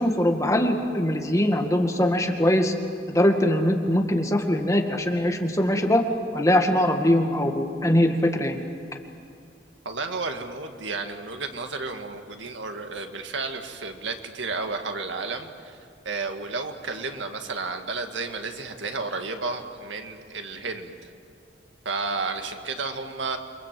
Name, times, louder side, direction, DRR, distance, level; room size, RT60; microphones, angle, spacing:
voice 1, 0.0-2.7 3.1-6.0 6.3-8.6, left 1 dB, 15° left, 3 dB, 1.9 m, -22 dB
voice 2, 9.9-15.8 16.1-21.1 21.9-23.4, right 3 dB, 80° right, 5 dB, 2.0 m, -32 dB
29.0 x 23.5 x 7.7 m, 2.3 s
head